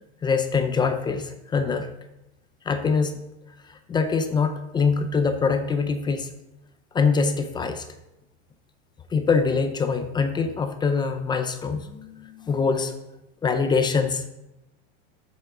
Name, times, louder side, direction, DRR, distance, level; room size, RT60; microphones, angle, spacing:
voice 1, 0.2-1.9 2.6-3.2 3.7-6.3 6.9-7.9 9.1-12.9 13.4-14.2, left 5 dB, 15° left, 8 dB, 0.5 m, -24 dB
11.5 x 7.1 x 3.8 m, 0.93 s
supercardioid pair, 145°, 34 cm